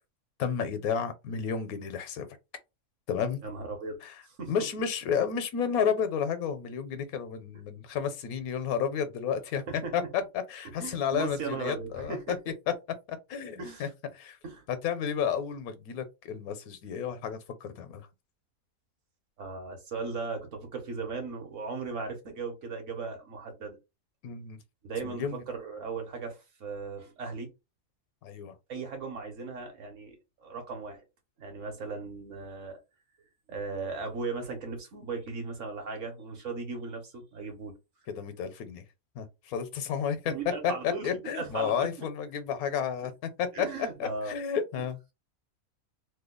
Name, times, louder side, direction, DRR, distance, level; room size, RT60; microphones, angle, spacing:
voice 1, 0.4-2.3 3.1-3.4 4.0-4.1 4.5-9.6 9.9-12.2 13.1-13.9 14.1-14.4 14.7-18.0 24.2-24.6 25.0-25.4 28.2-28.5 38.1-38.8 39.2-40.3 40.6-43.7 44.0-45.0, left 7 dB, 85° left, 1.1 m, -31 dB
voice 2, 3.4-4.0 4.3-4.5 9.7-9.9 10.8-12.4 13.6-13.9 14.4-14.6 15.2-15.3 19.4-23.8 24.8-27.5 28.7-30.1 30.4-31.0 31.4-32.8 33.5-37.7 40.3-42.1 43.0-43.1 43.5-44.4, right 4 dB, 60° right, 1.3 m, -37 dB
3.0 x 2.2 x 3.6 m
omnidirectional pair, 1.5 m